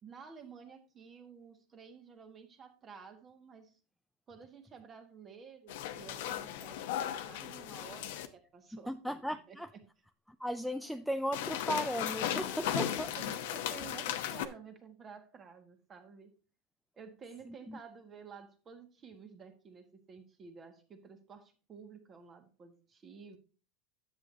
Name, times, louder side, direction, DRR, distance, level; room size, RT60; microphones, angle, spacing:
voice 1, 0.0-3.8 4.3-9.1 9.5-9.6 12.5-16.3 17.0-23.4, right 6 dB, 25° right, 1.7 m, -52 dB
sound 1, 5.7-8.3 11.3-14.5, left 11 dB, 75° left, 0.9 m, -36 dB
voice 2, 8.7-9.7 10.4-13.1 17.5-17.8, equal, ahead, 0.3 m, -36 dB
10.0 x 8.0 x 2.8 m
supercardioid pair, 145°, 0 cm